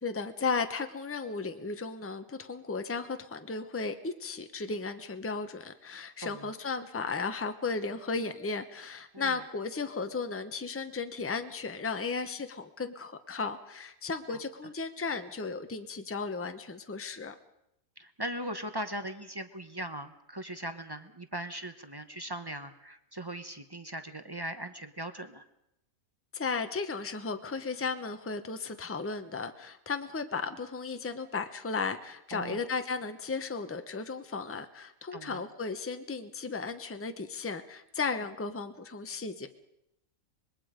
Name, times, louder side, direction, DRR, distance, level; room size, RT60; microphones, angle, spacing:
voice 1, 0.0-17.3 26.3-39.5, left 4 dB, 10° left, 8 dB, 0.8 m, -35 dB
voice 2, 18.0-25.5 32.3-32.6 35.1-35.4, right 1 dB, 20° right, 9 dB, 0.8 m, -39 dB
25.0 x 21.0 x 5.1 m, 0.82 s
omnidirectional pair, 1.4 m